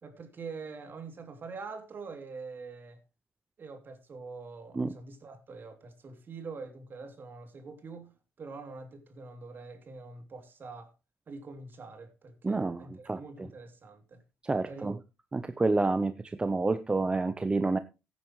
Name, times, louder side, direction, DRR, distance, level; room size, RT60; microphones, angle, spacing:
voice 1, 0.0-3.0 3.6-10.9 11.3-14.2 14.7-14.9, right 4 dB, 45° right, 2.8 m, -45 dB
voice 2, 12.4-13.5 14.4-15.0 15.3-17.8, right 3 dB, 20° right, 0.7 m, -29 dB
15.5 x 9.3 x 3.1 m
cardioid pair, 90°, 5 cm